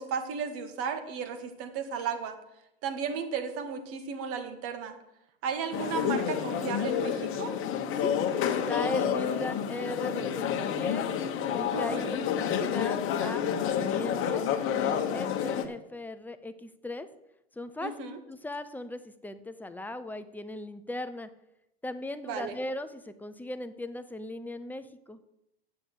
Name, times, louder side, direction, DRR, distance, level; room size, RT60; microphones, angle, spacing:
voice 1, 0.0-2.4 2.8-5.0 5.4-7.6 11.7-12.1 17.8-18.2 22.2-22.6, right 6 dB, 45° right, 7 dB, 1.9 m, -34 dB
sound 1, 5.7-15.6, left 8 dB, 40° left, 1.4 m, -29 dB
voice 2, 8.0-11.1 11.5-12.2 12.7-13.5 13.7-17.1 17.6-17.9 18.3-21.3 21.8-25.2, left 1 dB, 5° left, 9 dB, 0.8 m, -38 dB
8.4 x 6.9 x 8.2 m, 0.85 s
hypercardioid pair, 105°, 32 cm